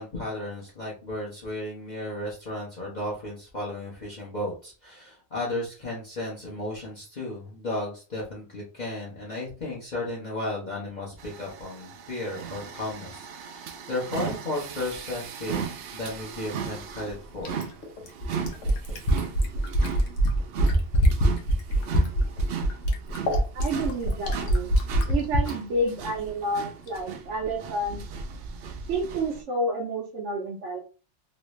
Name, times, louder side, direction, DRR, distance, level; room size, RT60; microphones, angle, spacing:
voice 1, 0.0-15.6 15.9-17.6, left 1 dB, 40° left, -5 dB, 1.0 m, -34 dB
sound 1, 11.2-29.4, right 7 dB, 65° right, 0.7 m, -37 dB
Fill (with liquid), 17.4-25.6 26.9-27.0, equal, 90° left, 1.2 m, -23 dB
voice 2, 23.5-24.7 25.1-28.0 28.9-30.8, right 1 dB, 80° right, -2 dB, 1.0 m, -29 dB
3.2 x 2.6 x 3.1 m, 0.36 s
omnidirectional pair, 1.2 m